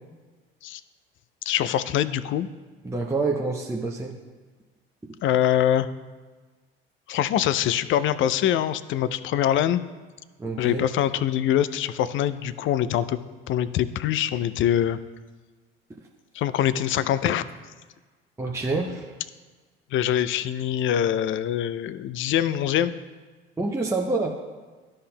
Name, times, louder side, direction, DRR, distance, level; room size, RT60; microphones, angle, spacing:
voice 1, 1.5-2.5 5.2-5.9 7.1-9.8 10.6-13.2 13.5-15.0 16.3-17.4 19.9-22.9, left 11 dB, 45° left, 14 dB, 0.4 m, -24 dB
voice 2, 2.8-4.1 10.4-10.8 18.4-19.1 23.6-24.4, right 3 dB, 10° right, 0 dB, 0.6 m, -27 dB
12.5 x 5.4 x 2.2 m, 1.4 s
hypercardioid pair, 60°, 30 cm